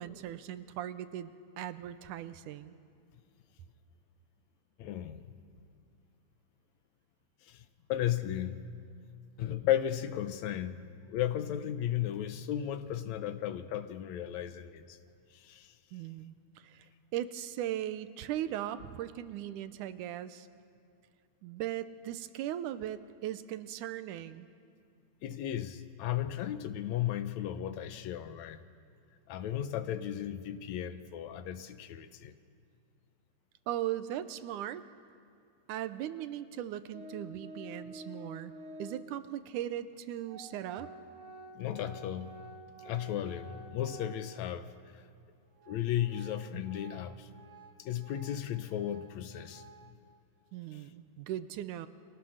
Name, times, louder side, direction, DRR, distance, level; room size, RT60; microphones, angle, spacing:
voice 1, 0.0-2.8 15.9-20.5 21.4-24.5 33.7-34.8 35.7-38.5 38.8-40.9 50.5-51.9, right 12 dB, 90° right, 12 dB, 2.4 m, -38 dB
voice 2, 4.8-5.3 7.5-8.6 9.4-15.0 15.3-15.7 25.2-28.6 29.3-32.3 41.6-42.3 42.8-44.7 45.7-47.3 47.8-49.6 50.7-50.8, left 11 dB, 70° left, 10 dB, 2.2 m, -35 dB
Organ, 36.9-39.2 39.9-40.0 40.2-44.6 45.0-45.1 45.6-50.0, right 2 dB, 40° right, 1.1 m, -50 dB
29.5 x 23.0 x 6.5 m, 2.3 s
omnidirectional pair, 3.4 m